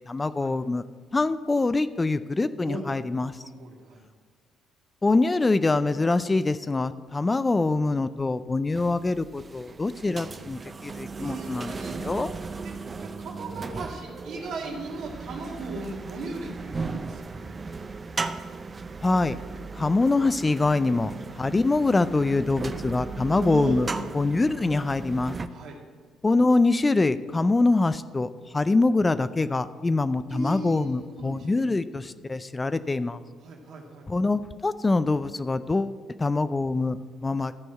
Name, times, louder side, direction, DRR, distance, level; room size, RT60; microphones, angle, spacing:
voice 1, 0.1-0.8 1.1-3.4 5.0-11.7 12.0-12.3 19.0-19.4 19.7-23.9 24.1-25.4 26.2-33.2 34.1-37.5, left 3 dB, 25° left, 13 dB, 0.4 m, -24 dB
voice 2, 3.4-4.0 10.0-10.2 11.2-12.0 12.6-17.6 23.3-23.9 25.5-25.8 30.3-31.6 33.4-34.1, right 2 dB, 70° right, 0 dB, 2.1 m, -37 dB
sound 1, 8.7-25.5, right 4 dB, 35° right, 0.6 m, -37 dB
13.0 x 4.5 x 7.9 m, 1.5 s
supercardioid pair, 75°, 0 cm